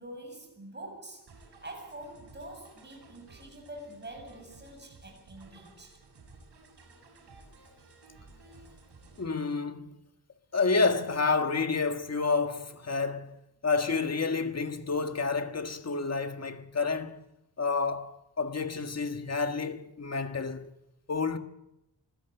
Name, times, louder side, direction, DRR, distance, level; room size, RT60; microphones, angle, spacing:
voice 1, 0.0-6.0, right 1 dB, 25° right, 7.6 m, -46 dB
sound 1, 1.3-9.3, right 3 dB, 80° right, 7.3 m, -55 dB
voice 2, 9.2-10.0 10.5-17.2 17.6-20.7 21.1-21.4, left 4 dB, 40° left, 1.7 m, -29 dB
25.0 x 16.0 x 8.1 m
wide cardioid pair, 140°, 40 cm